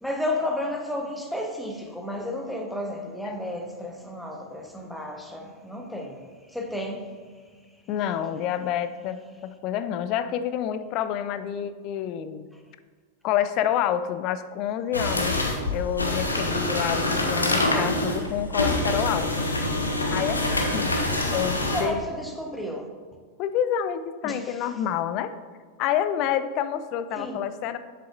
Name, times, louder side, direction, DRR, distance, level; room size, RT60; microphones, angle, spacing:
voice 1, 0.0-6.2 6.5-7.0 21.6-22.8 24.2-24.4 27.2-27.4, left 1 dB, ahead, 1 dB, 1.0 m, -32 dB
voice 2, 7.9-9.2 9.4-12.5 13.2-15.5 15.7-19.5 20.1-20.4 20.7-21.0 21.3-22.0 23.4-25.3 25.8-27.8, left 10 dB, 40° left, 12 dB, 0.4 m, -28 dB
sound 1, 14.9-21.8, left 2 dB, 80° left, 0.9 m, -25 dB
7.6 x 6.6 x 2.5 m, 1.5 s
figure-of-eight pair, 90°, 0 cm